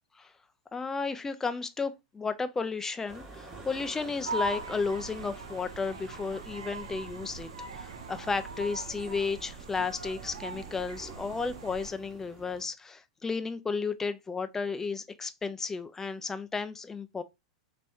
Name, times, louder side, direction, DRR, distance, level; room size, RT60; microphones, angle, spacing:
voice 1, 0.7-17.2, left 4 dB, 15° left, 0.4 m, -33 dB
sound 1, 3.1-12.7, right 3 dB, 30° right, 1.7 m, -49 dB
sound 2, 4.2-11.9, right 2 dB, 75° right, 0.7 m, -40 dB
3.4 x 3.3 x 2.6 m
hypercardioid pair, 95°, 3 cm